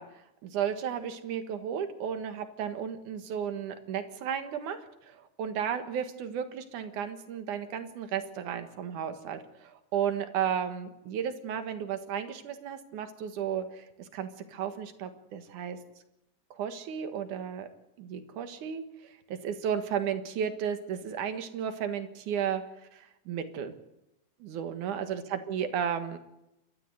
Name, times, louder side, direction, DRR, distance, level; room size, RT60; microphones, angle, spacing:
voice 1, 0.0-15.8 16.5-17.7 18.0-22.6 22.9-23.7 24.4-26.2, right 8 dB, 80° right, 9 dB, 3.0 m, -34 dB
28.5 x 13.0 x 8.1 m, 0.88 s
omnidirectional pair, 3.5 m